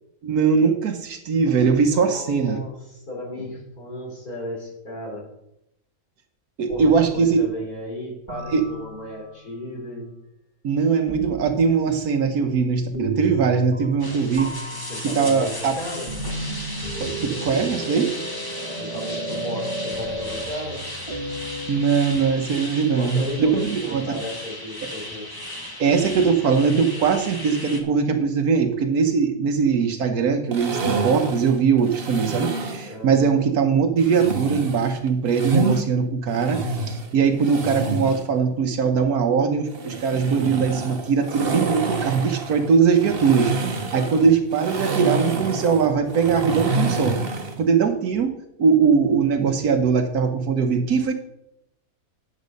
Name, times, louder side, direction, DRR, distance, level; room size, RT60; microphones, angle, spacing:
voice 1, 0.2-2.6 6.6-7.4 8.5-8.6 10.6-15.7 17.0-18.1 18.6-18.7 21.7-24.0 25.8-47.2 47.6-48.3 48.6-51.1, right 5 dB, 75° right, 5 dB, 1.4 m, -21 dB
voice 2, 1.9-5.2 6.7-10.1 14.7-16.1 18.8-20.8 22.9-25.3 32.8-33.5 44.1-44.2, left 1 dB, 70° left, -2 dB, 4.2 m, -34 dB
sound 1, 6.7-7.5 8.3-9.4 11.1-11.6 12.9-14.1 14.4-21.8, right 1 dB, 20° right, 1.5 m, -33 dB
sound 2, 14.0-27.8, left 1 dB, 15° left, 1.5 m, -36 dB
sound 3, 30.5-32.9 34.0-35.8 36.3-38.3 39.7-47.6, right 3 dB, 40° right, 1.3 m, -28 dB
10.0 x 8.3 x 5.2 m, 0.80 s
omnidirectional pair, 1.6 m